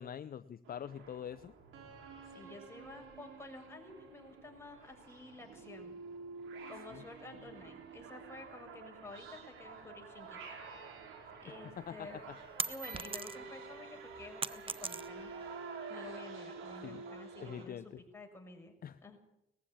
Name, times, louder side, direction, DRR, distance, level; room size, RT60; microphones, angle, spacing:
voice 1, 0.0-1.5 6.9-7.0 11.8-12.4 16.8-17.0 17.4-18.0 18.8-19.0, left 9 dB, 50° left, 13 dB, 0.7 m, -44 dB
sound 1, 0.6-17.6, right 4 dB, 85° right, 4.4 m, -49 dB
voice 2, 2.3-6.0 6.7-10.6 11.4-12.3 12.6-15.3 15.9-18.7 19.0-19.2, left 2 dB, 10° left, 2 dB, 6.3 m, -51 dB
sound 2, 11.8-13.6 14.0-15.4, right 4 dB, 25° right, 0.8 m, -39 dB
20.0 x 15.5 x 8.6 m, 0.81 s
cardioid pair, 90°, 20 cm